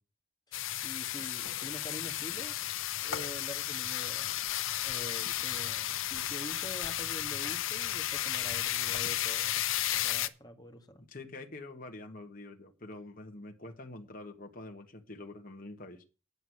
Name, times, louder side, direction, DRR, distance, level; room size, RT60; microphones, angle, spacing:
sound 1, 0.5-10.3, left 12 dB, 70° left, 0.7 m, -33 dB
voice 1, 0.5-4.4 4.7-9.6 9.9-11.0, equal, 20° left, 1.8 m, -46 dB
voice 2, 11.1-16.0, left 2 dB, 40° left, 1.4 m, -46 dB
9.6 x 6.6 x 7.8 m
head